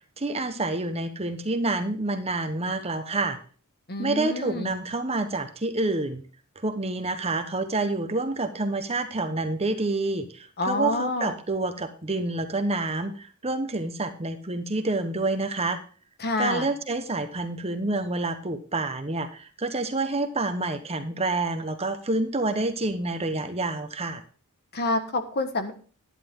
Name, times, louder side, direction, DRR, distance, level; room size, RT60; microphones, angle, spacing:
voice 1, 0.2-3.4 4.0-6.2 6.6-15.8 16.4-24.2, right 2 dB, 30° right, 8 dB, 1.1 m, -28 dB
voice 2, 3.9-4.7 10.6-11.3 16.2-16.7 24.7-25.7, left 2 dB, 45° left, 8 dB, 1.5 m, -27 dB
11.5 x 10.0 x 3.8 m, 0.40 s
head